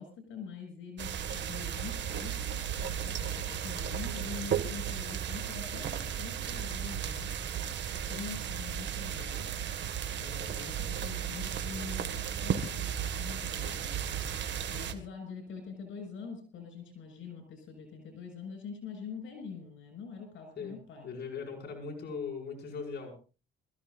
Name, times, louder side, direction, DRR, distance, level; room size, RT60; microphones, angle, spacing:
voice 1, 0.0-7.5 8.0-9.5 10.2-14.1 14.7-21.1, left 6 dB, 75° left, 4 dB, 7.1 m, -44 dB
sound 1, 1.0-14.9, right 9 dB, 65° right, 2.0 m, -35 dB
voice 2, 21.0-23.3, left 5 dB, 55° left, 1 dB, 6.8 m, -39 dB
27.0 x 15.0 x 2.6 m, 0.34 s
cardioid pair, 90°, 20 cm